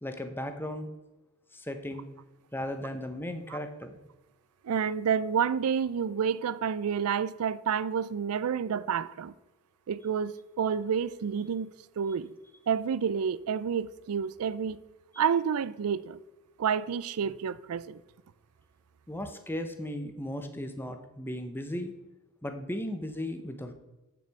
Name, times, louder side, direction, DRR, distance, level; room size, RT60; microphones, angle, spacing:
voice 1, 0.0-0.9 1.5-2.1 2.5-4.0 19.1-21.9 22.4-23.7, left 1 dB, 10° left, 0.7 m, -36 dB
voice 2, 4.6-9.3 9.9-11.7 12.0-12.3 12.7-14.8 15.2-16.2 16.6-18.0, right 7 dB, 90° right, 0.4 m, -29 dB
8.2 x 6.9 x 4.7 m
head